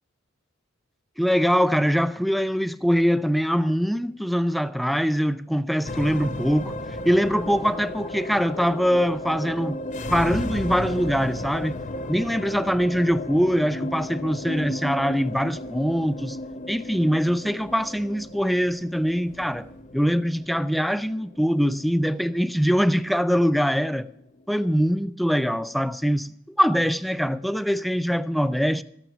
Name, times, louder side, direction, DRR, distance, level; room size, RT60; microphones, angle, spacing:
voice 1, 1.2-6.8 7.1-9.8 10.1-11.8 12.1-16.4 16.7-19.7 19.9-24.1 24.5-28.8, equal, ahead, 0.4 m, -23 dB
sound 1, 5.9-24.4, left 1 dB, 40° left, 0.7 m, -34 dB
14.0 x 9.1 x 5.9 m
head